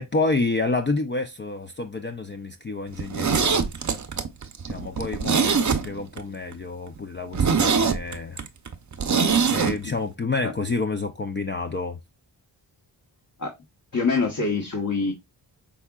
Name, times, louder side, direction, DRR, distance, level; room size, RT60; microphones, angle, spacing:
voice 1, 0.0-3.7 4.7-8.4 9.5-12.0, left 3 dB, 25° left, 0.5 m, -29 dB
Zipper (clothing), 2.9-6.2 6.5-6.6 7.0-7.1 7.3-9.8 10.0-10.1, right 5 dB, 40° right, 0.7 m, -23 dB
voice 2, 13.9-15.1, left 4 dB, 40° left, 1.2 m, -25 dB
5.3 x 3.6 x 2.4 m
cardioid pair, 50°, 46 cm